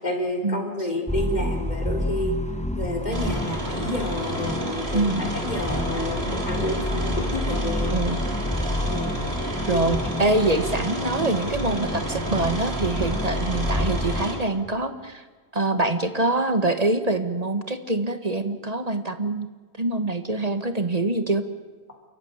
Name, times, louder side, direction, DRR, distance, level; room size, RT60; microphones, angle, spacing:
voice 1, 0.0-2.4 2.8-8.0 8.9-9.2 9.7-9.9, left 1 dB, 40° left, 2 dB, 3.9 m, -29 dB
sound 1, 1.1-14.2, left 1 dB, 5° left, 1.1 m, -29 dB
sound 2, 3.1-14.4, right 1 dB, 70° right, 3.7 m, -31 dB
voice 2, 4.9-5.3 7.9-8.2 9.7-15.2 15.5-19.5 19.8-21.4, right 2 dB, 35° right, 9 dB, 1.5 m, -25 dB
28.5 x 14.5 x 9.6 m, 1.4 s
omnidirectional pair, 1.1 m